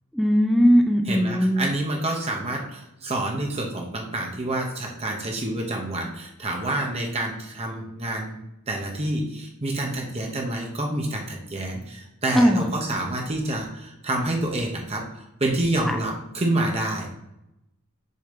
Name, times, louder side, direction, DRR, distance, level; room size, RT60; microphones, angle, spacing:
voice 1, 0.1-1.7 12.3-12.8 15.8-16.0, equal, ahead, 4 dB, 0.3 m, -19 dB
voice 2, 1.1-8.4 8.7-17.1, right 1 dB, 25° right, 0 dB, 0.8 m, -28 dB
6.6 x 2.9 x 5.0 m, 0.88 s
head